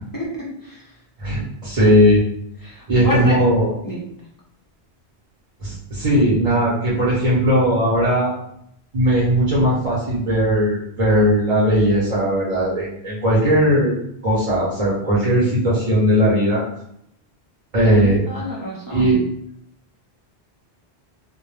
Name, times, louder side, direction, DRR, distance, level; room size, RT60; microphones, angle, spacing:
voice 1, 0.1-0.8 2.6-3.4 3.8-4.0 17.8-19.2, left 1 dB, 35° left, -5 dB, 0.3 m, -28 dB
voice 2, 1.2-2.2 2.9-3.7 5.6-8.3 8.9-14.0 14.2-16.6 17.7-18.2 18.9-19.2, equal, 40° right, -8 dB, 0.7 m, -18 dB
2.1 x 2.1 x 3.0 m, 0.74 s
omnidirectional pair, 1.1 m